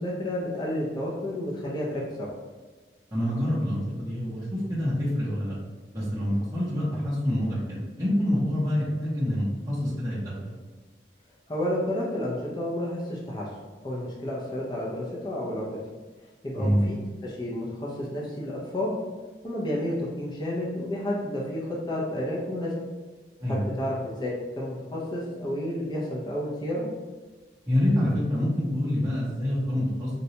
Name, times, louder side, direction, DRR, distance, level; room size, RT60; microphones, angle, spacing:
voice 1, 0.0-2.3 11.5-15.8 16.4-17.0 17.2-18.9 19.4-22.7 23.5-26.9, left 1 dB, 25° left, -5 dB, 0.5 m, -31 dB
voice 2, 3.1-5.5 5.9-10.6 16.6-16.8 23.4-23.6 27.7-30.1, left 1 dB, 15° right, -10 dB, 0.6 m, -26 dB
3.9 x 2.2 x 2.7 m, 1.3 s
head